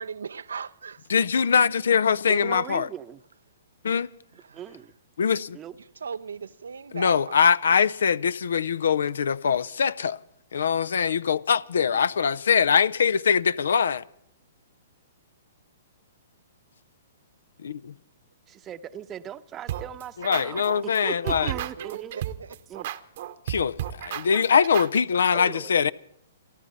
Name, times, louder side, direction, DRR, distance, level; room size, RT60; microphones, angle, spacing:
voice 1, 0.0-1.1 1.4-1.5 4.3-4.6 5.8-7.5 21.5-22.6 22.8-22.9, right 6 dB, 70° right, 0.6 m, -39 dB
voice 2, 1.1-2.9 3.8-4.1 5.2-5.6 6.9-10.2 10.5-14.0 17.6-17.9 20.2-21.5 23.5-25.9, left 6 dB, 65° left, 0.5 m, -22 dB
voice 3, 2.3-3.2 4.5-4.9 5.5-5.8 11.9-12.0 18.5-22.3 22.7-22.9 25.3-25.9, right 10 dB, 20° right, 0.8 m, -38 dB
sound 1, 19.7-21.0 21.3-25.0, right 12 dB, 50° right, 1.0 m, -33 dB
29.0 x 12.0 x 4.1 m
figure-of-eight pair, 115°, 0 cm